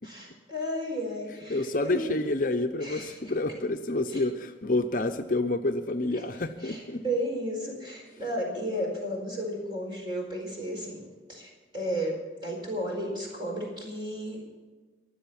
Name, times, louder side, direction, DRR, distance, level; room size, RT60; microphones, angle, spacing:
voice 1, 0.0-2.2 2.8-3.2 4.1-4.2 6.1-11.0 11.3-14.6, equal, 25° right, -1 dB, 4.3 m, -34 dB
voice 2, 1.5-7.0, left 2 dB, 45° left, 6 dB, 0.7 m, -28 dB
23.0 x 7.8 x 5.9 m, 1.4 s
head